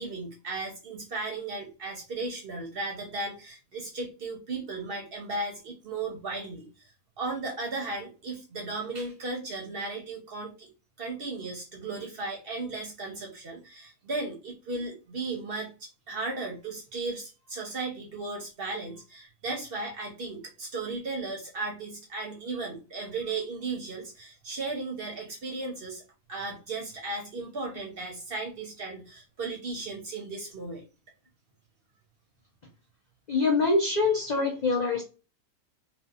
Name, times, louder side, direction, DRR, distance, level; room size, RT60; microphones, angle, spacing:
voice 1, 0.0-6.9 7.2-10.7 11.0-26.0 26.3-30.8, right 3 dB, 55° right, 0 dB, 0.7 m, -36 dB
voice 2, 33.3-35.0, left 3 dB, 65° left, 0 dB, 0.4 m, -24 dB
2.7 x 2.2 x 2.3 m, 0.32 s
omnidirectional pair, 1.5 m